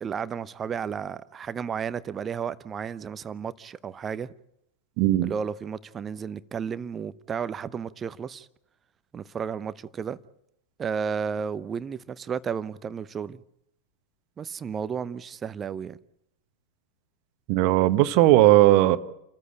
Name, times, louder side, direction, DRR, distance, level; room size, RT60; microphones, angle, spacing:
voice 1, 0.0-4.3 5.2-8.5 9.1-10.2 10.8-13.4 14.4-16.0, right 7 dB, 20° right, 0.8 m, -33 dB
voice 2, 5.0-5.3 17.5-19.0, right 16 dB, 45° right, 1.2 m, -18 dB
29.5 x 14.5 x 8.7 m
figure-of-eight pair, 90°, 0 cm